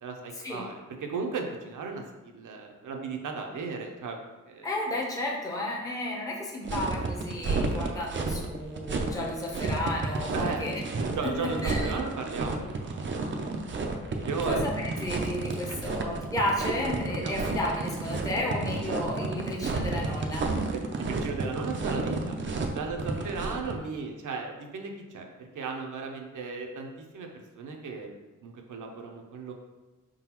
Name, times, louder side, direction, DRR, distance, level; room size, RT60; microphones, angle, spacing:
voice 1, 0.0-4.2 4.5-4.7 10.3-10.6 11.0-13.6 14.2-14.7 15.7-15.9 17.2-17.3 20.7-22.3 22.7-28.2 28.4-29.5, right 4 dB, 75° right, 2 dB, 0.7 m, -36 dB
voice 2, 4.6-10.8 11.2-11.3 11.6-11.9 14.5-20.5, left 1 dB, 10° left, -3 dB, 0.7 m, -32 dB
sound 1, 6.6-23.7, right 3 dB, 40° right, 0.4 m, -31 dB
4.7 x 3.8 x 2.9 m, 1.1 s
wide cardioid pair, 150°, 31 cm